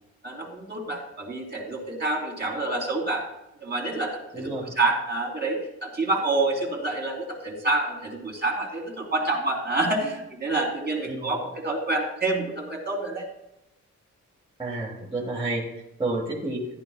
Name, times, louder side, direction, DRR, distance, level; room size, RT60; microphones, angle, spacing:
voice 1, 0.2-3.3 3.6-13.2, right 2 dB, 35° right, 0 dB, 2.7 m, -28 dB
voice 2, 4.3-4.7 11.1-11.3 14.6-15.6 16.0-16.6, right 2 dB, 15° right, -5 dB, 1.7 m, -30 dB
13.5 x 11.0 x 2.3 m, 0.86 s
wide cardioid pair, 150°, 30 cm